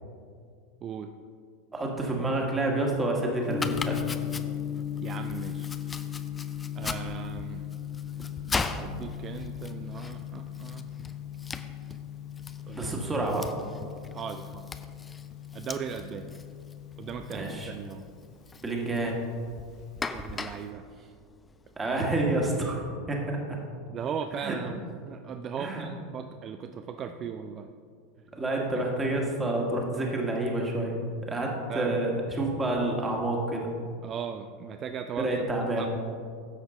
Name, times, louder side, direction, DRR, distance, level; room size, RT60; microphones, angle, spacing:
voice 1, 0.8-1.1 5.0-5.7 6.7-7.6 8.7-10.9 12.7-12.9 14.1-14.7 15.5-16.3 17.0-18.0 20.1-21.1 23.9-27.7 28.8-28.9 31.7-32.0 34.0-35.4 35.8-35.9, right 7 dB, 35° right, 8 dB, 0.4 m, -38 dB
voice 2, 1.7-4.0 12.8-13.5 17.3-17.7 18.6-19.2 21.8-22.8 23.1-23.6 24.4-24.6 25.6-25.9 28.3-30.9 31.2-33.7 35.2-35.9, right 2 dB, 15° right, 0 dB, 1.8 m, -28 dB
Gong, 3.5-20.7, left 10 dB, 45° left, 1.1 m, -38 dB
Domestic sounds home sounds, 3.5-22.0, left 4 dB, 20° left, 0.5 m, -40 dB
10.5 x 7.1 x 3.8 m, 2.2 s
figure-of-eight pair, 80°, 0 cm